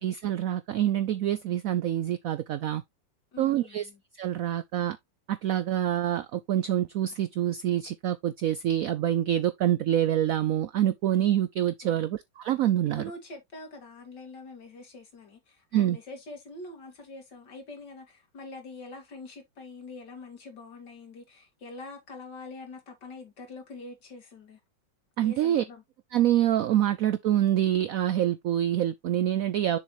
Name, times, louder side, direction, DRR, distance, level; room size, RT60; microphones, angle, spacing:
voice 1, 0.0-2.8 3.4-3.9 4.2-5.0 5.3-13.1 15.7-16.0 25.2-25.6 26.1-29.8, right 11 dB, 90° right, 0.7 m, -26 dB
voice 2, 3.3-4.0 11.8-12.0 12.9-24.6 25.2-25.8, left 2 dB, 65° left, 2.9 m, -44 dB
6.8 x 5.7 x 3.0 m
omnidirectional pair, 2.1 m